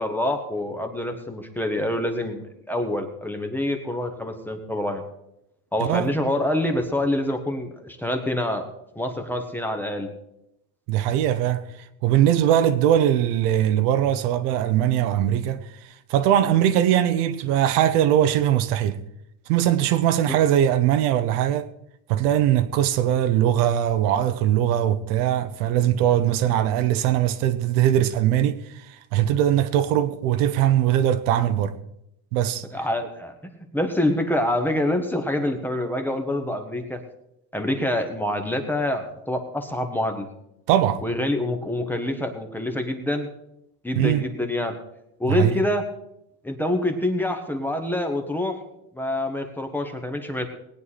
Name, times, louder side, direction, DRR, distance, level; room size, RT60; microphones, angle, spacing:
voice 1, 0.0-5.0 5.7-8.6 8.9-10.1 20.3-20.4 32.7-37.0 37.5-40.3 41.0-43.3 43.8-44.8 45.2-45.8 46.4-48.6 48.9-50.5, left 1 dB, 5° left, 1.1 m, -26 dB
voice 2, 5.8-6.1 10.9-11.7 12.0-19.0 19.5-21.7 22.1-31.8 32.3-32.6 40.7-41.0 43.9-44.2 45.2-45.6, right 11 dB, 85° right, 1.1 m, -21 dB
19.5 x 9.3 x 4.2 m
cardioid pair, 160°, 45 cm